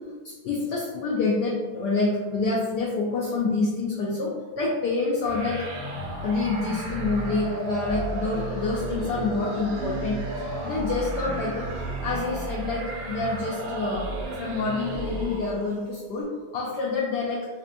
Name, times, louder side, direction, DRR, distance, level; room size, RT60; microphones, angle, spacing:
voice 1, 0.2-5.7 6.2-14.1 14.4-16.3 16.5-17.5, left 3 dB, 75° left, -4 dB, 1.0 m, -27 dB
sound 1, 5.2-15.8, right 2 dB, 60° right, 1.0 m, -33 dB
4.1 x 2.7 x 2.5 m, 1.3 s
omnidirectional pair, 2.2 m